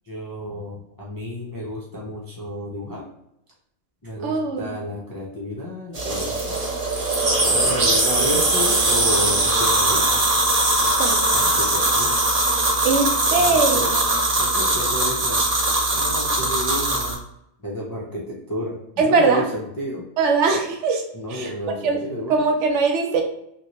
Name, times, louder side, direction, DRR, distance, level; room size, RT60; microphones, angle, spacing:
voice 1, 0.0-3.1 4.0-6.6 7.4-10.2 11.3-12.3 13.4-13.9 14.3-15.5 15.9-17.2 17.6-20.1 21.1-22.4, left 1 dB, 35° left, -5 dB, 0.3 m, -31 dB
voice 2, 4.2-4.7 11.0-11.2 12.8-14.2 19.0-19.5 20.2-21.0 21.3-22.0 22.3-23.2, right 4 dB, 70° right, 3 dB, 0.8 m, -21 dB
sound 1, 5.9-17.1, right 2 dB, 40° right, 0.7 m, -20 dB
2.9 x 2.8 x 2.9 m, 0.79 s
omnidirectional pair, 1.3 m